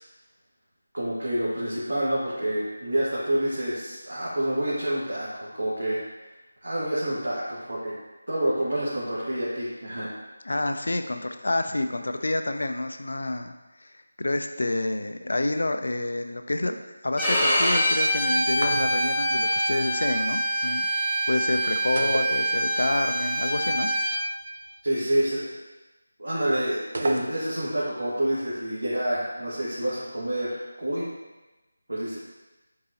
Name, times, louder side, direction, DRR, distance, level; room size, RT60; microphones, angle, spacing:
voice 1, 0.9-6.0 6.6-7.9 8.3-10.1 24.8-25.6 26.2-31.1 31.9-32.2, right 1 dB, 75° right, -9 dB, 1.8 m, -28 dB
voice 2, 10.4-13.5 13.8-13.9 14.2-20.8 21.3-23.9, left 2 dB, 65° left, 7 dB, 0.5 m, -28 dB
Bowed string instrument, 17.2-24.1, equal, ahead, 1.1 m, -25 dB
sound 1, 18.5-19.3 22.0-23.0 23.3-23.4 26.9-27.7, right 2 dB, 55° right, 0.6 m, -33 dB
8.6 x 3.8 x 2.9 m, 1.1 s
figure-of-eight pair, 165°, 0 cm